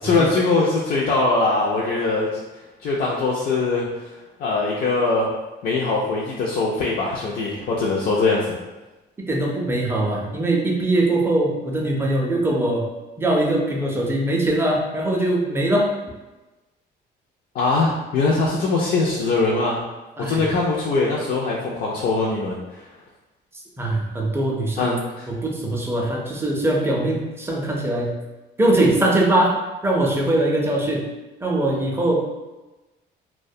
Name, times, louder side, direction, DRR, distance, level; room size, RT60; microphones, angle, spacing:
voice 1, 0.0-2.4 2.8-3.9 4.4-5.3 5.6-8.6 17.5-19.8 20.2-22.8 24.8-25.3, left 3 dB, 55° left, -4 dB, 0.4 m, -22 dB
voice 2, 9.3-12.9 13.2-15.9 20.2-20.4 23.8-25.0 25.3-28.2 28.6-29.6 29.8-31.1 31.4-32.2, right 1 dB, 15° right, -1 dB, 0.4 m, -21 dB
2.3 x 2.1 x 2.6 m, 1.1 s
cardioid pair, 130°, 18 cm